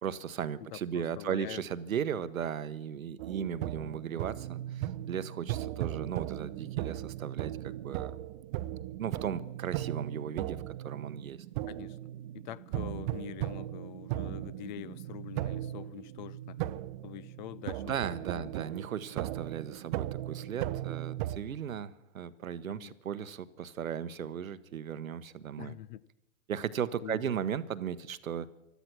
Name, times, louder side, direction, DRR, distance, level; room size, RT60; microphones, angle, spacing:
voice 1, 0.0-8.2 9.0-11.4 17.8-25.8 26.5-28.5, right 8 dB, 85° right, 1.0 m, -36 dB
voice 2, 0.6-1.6 11.7-12.0 12.4-16.6 17.0-17.9 18.3-18.5 22.7-23.0 25.6-26.0 27.0-27.4, left 12 dB, 35° left, 0.5 m, -44 dB
sound 1, 3.2-21.4, right 14 dB, 40° right, 0.7 m, -37 dB
16.5 x 12.5 x 6.1 m
hypercardioid pair, 125°, 40 cm